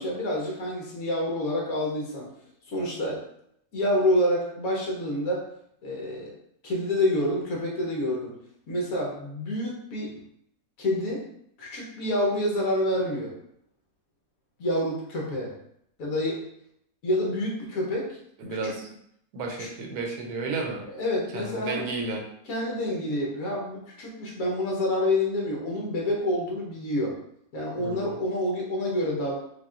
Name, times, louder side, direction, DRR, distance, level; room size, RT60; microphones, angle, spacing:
voice 1, 0.0-2.3 2.7-3.2 3.7-5.4 5.8-6.4 6.6-8.3 8.7-10.2 10.8-11.2 11.6-13.3 14.6-15.5 16.0-16.4 17.0-18.1 18.5-18.7 19.5-19.7 20.9-21.8 22.4-27.1 27.5-29.4, left 1 dB, 65° left, -2 dB, 1.4 m, -28 dB
voice 2, 18.4-18.8 19.3-20.8 21.3-22.3 27.8-28.1, right 3 dB, 80° right, 1 dB, 1.2 m, -32 dB
5.4 x 2.4 x 2.5 m, 0.73 s
omnidirectional pair, 1.6 m